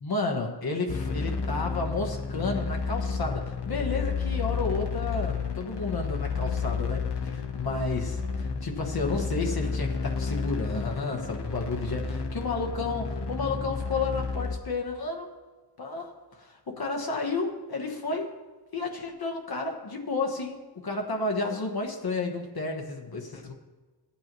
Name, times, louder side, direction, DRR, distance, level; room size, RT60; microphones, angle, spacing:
voice 1, 0.0-15.3 15.8-18.3 18.7-23.5, left 3 dB, 65° left, 2 dB, 1.2 m, -32 dB
sound 1, 0.9-14.6, left 5 dB, 80° left, 0.9 m, -31 dB
15.5 x 8.6 x 3.0 m, 1.3 s
wide cardioid pair, 75°, 40 cm